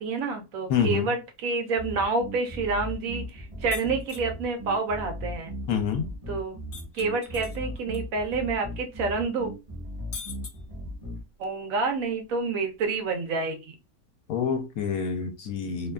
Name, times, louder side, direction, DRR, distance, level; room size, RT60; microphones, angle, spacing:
voice 1, 0.0-5.5 6.3-6.6 6.9-9.5 11.4-13.7, right 4 dB, 70° right, 0.9 m, -28 dB
voice 2, 0.7-1.1 5.7-6.1 14.3-15.9, left 7 dB, 75° left, 1.0 m, -27 dB
sound 1, 1.7-11.2, equal, 25° right, 0.8 m, -37 dB
sound 2, 3.7-4.3 6.7-8.0 8.3-8.4 10.1-11.1, left 4 dB, 45° left, 1.0 m, -41 dB
2.7 x 2.2 x 2.3 m
omnidirectional pair, 1.6 m